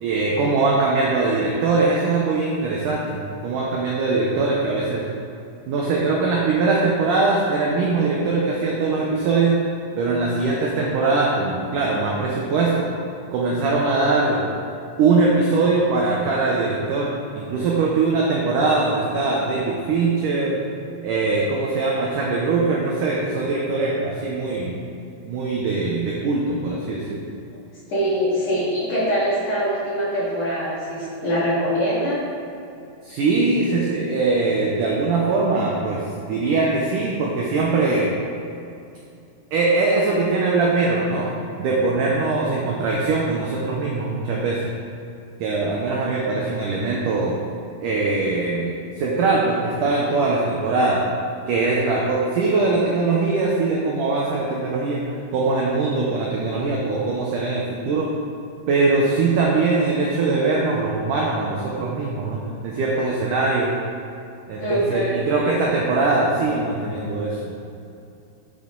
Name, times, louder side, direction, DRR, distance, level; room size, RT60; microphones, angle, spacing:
voice 1, 0.0-5.0 5.7-9.6 9.9-12.9 13.3-14.5 15.0-20.6 21.0-24.7 25.2-27.3 33.0-36.0 36.3-38.2 39.5-41.3 41.6-44.6 45.4-47.4 47.8-51.0 51.5-55.0 55.3-58.1 58.7-63.7 64.5-67.5, right 3 dB, 85° right, -3 dB, 1.8 m, -21 dB
voice 2, 27.9-32.2 64.6-65.2, equal, 45° left, -9 dB, 3.0 m, -23 dB
10.5 x 6.6 x 4.0 m, 2.6 s
omnidirectional pair, 5.0 m